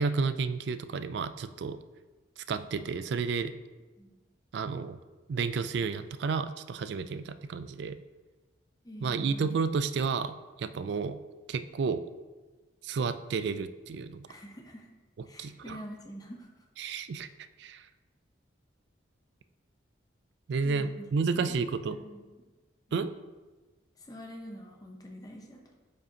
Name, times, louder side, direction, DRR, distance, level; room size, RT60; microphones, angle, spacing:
voice 1, 0.0-1.8 2.4-3.5 4.5-5.0 5.3-8.0 9.0-11.2 11.5-12.0 12.8-14.3 15.2-15.8 16.8-17.3 17.6-17.9 20.5-22.0 22.9-23.1, right 5 dB, 65° right, 12 dB, 0.3 m, -31 dB
voice 2, 8.8-9.6 14.3-14.9 15.3-16.5 20.6-21.1 21.8-22.2 24.0-25.8, equal, 20° left, 1 dB, 0.7 m, -46 dB
9.0 x 5.1 x 2.8 m, 1.3 s
head